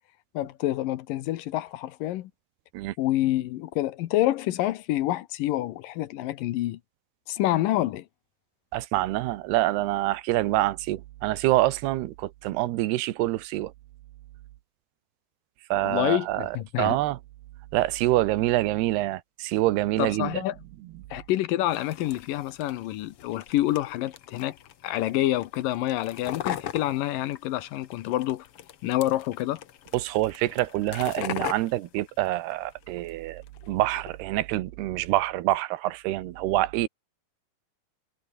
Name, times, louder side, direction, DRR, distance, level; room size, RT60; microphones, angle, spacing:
voice 1, 0.3-2.3 3.0-6.8 7.3-8.1 15.8-17.0 20.0-20.6 21.1-24.6 24.8-28.5 28.8-29.6, left 15 dB, 70° left, 2.4 m, -27 dB
voice 2, 8.7-13.7 15.7-17.2 17.7-20.4 29.9-36.9, right 16 dB, 90° right, 3.1 m, -26 dB
sound 1, 21.7-33.1 33.4-34.1, left 10 dB, 90° left, 1.2 m, -40 dB
omnidirectional pair, 4.5 m